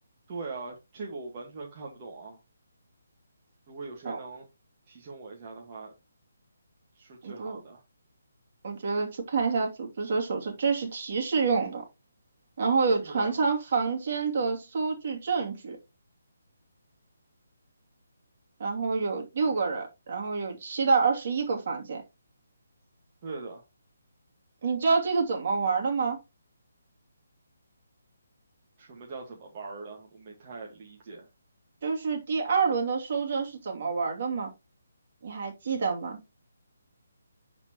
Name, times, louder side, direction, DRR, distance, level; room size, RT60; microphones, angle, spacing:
voice 1, 0.3-2.4 3.7-4.5 4.9-5.9 6.9-7.8 13.0-13.3 23.2-23.6 28.8-31.3, right 3 dB, 35° right, 1.6 m, -41 dB
voice 2, 7.2-7.6 8.6-11.8 12.6-15.8 18.6-22.0 24.6-26.2 31.8-34.5 35.2-36.2, right 4 dB, 50° right, 2.5 m, -27 dB
11.0 x 4.3 x 3.0 m
hypercardioid pair, 155°, 0 cm